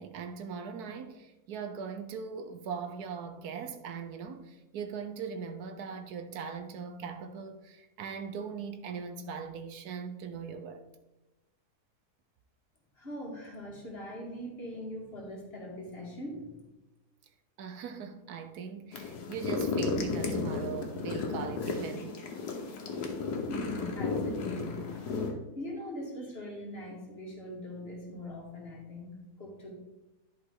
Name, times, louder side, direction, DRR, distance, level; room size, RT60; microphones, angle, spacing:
voice 1, 0.0-10.8 17.6-22.2 22.5-22.6, right 6 dB, 75° right, 1.2 m, -40 dB
voice 2, 13.0-16.6 23.4-29.8, left 1 dB, 40° left, 2.1 m, -42 dB
sound 1, 18.9-25.3, left 4 dB, 80° left, 1.6 m, -33 dB
11.0 x 5.3 x 3.8 m
omnidirectional pair, 1.7 m